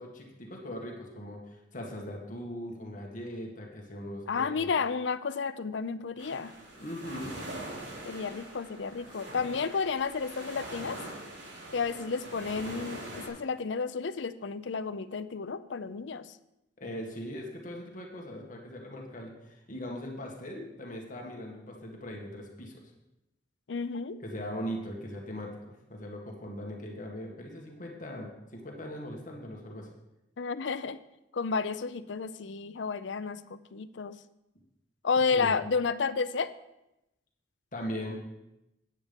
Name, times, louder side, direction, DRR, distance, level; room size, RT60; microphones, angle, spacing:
voice 1, 0.0-4.7 6.8-7.4 16.8-22.8 24.2-25.6 25.9-29.9 35.3-35.5 37.7-38.2, equal, 45° left, 0 dB, 1.9 m, -40 dB
voice 2, 4.3-6.5 8.0-11.0 11.7-16.4 23.7-24.2 30.4-31.0 31.3-34.2 35.0-36.5, left 5 dB, 70° left, 14 dB, 0.5 m, -31 dB
sound 1, 6.2-13.3, right 1 dB, 80° right, 4.1 m, -43 dB
9.4 x 8.7 x 5.3 m, 0.91 s
head